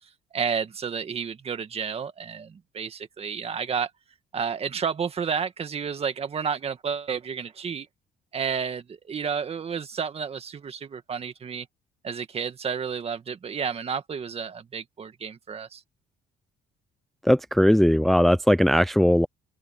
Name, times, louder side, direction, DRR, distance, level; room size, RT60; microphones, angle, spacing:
voice 1, 0.3-3.9 4.3-7.9 8.3-11.7 12.0-15.8, right 6 dB, 35° right, 1.9 m, -31 dB
voice 2, 17.2-19.3, equal, ahead, 0.5 m, -19 dB
open air
cardioid pair, 110°, 17 cm